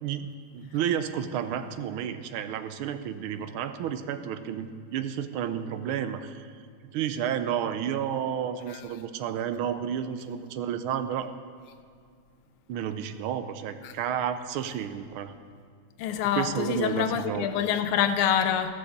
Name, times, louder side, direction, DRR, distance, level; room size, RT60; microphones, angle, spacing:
voice 1, 0.0-6.5 6.9-11.3 12.7-15.3 16.3-17.6, right 9 dB, 85° right, 1.5 m, -31 dB
voice 2, 16.0-18.7, left 9 dB, 85° left, 1.6 m, -26 dB
15.5 x 5.7 x 6.6 m
omnidirectional pair, 2.3 m